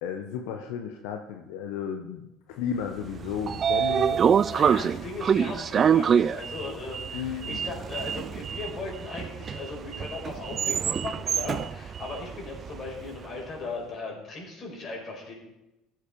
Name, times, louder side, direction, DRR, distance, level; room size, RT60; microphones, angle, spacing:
voice 1, 0.0-4.2 7.1-7.6, left 8 dB, 85° left, 5 dB, 1.0 m, -33 dB
Sliding door, 3.0-13.2, right 7 dB, 40° right, 0.3 m, -26 dB
voice 2, 4.5-15.3, left 3 dB, 40° left, -1 dB, 5.4 m, -38 dB
15.5 x 8.0 x 5.3 m, 0.97 s
supercardioid pair, 100°, 0 cm